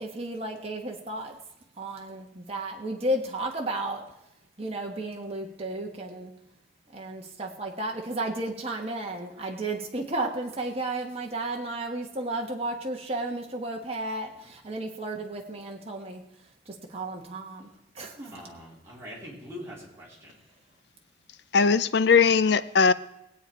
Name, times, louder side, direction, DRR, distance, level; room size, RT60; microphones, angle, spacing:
voice 1, 0.0-1.3 1.8-4.0 4.6-6.3 6.9-16.2 16.9-17.7 18.0-18.3, right 2 dB, 30° right, 1.4 m, -33 dB
voice 2, 18.2-20.3, equal, 15° right, 3.8 m, -43 dB
voice 3, 21.5-22.9, left 5 dB, 60° left, 0.5 m, -20 dB
20.5 x 8.5 x 4.6 m
head